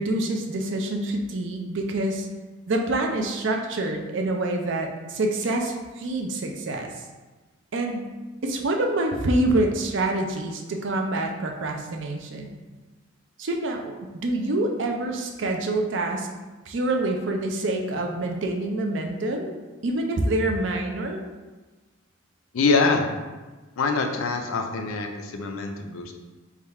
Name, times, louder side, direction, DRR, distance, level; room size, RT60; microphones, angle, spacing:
voice 1, 0.0-2.3 2.7-6.9 7.7-8.1 8.4-12.5 13.4-16.3 16.7-19.5 19.8-21.2, right 2 dB, 60° right, 2 dB, 0.5 m, -26 dB
voice 2, 22.5-23.1 23.8-26.1, left 4 dB, 85° left, 4 dB, 0.5 m, -24 dB
3.6 x 2.3 x 4.2 m, 1.2 s
head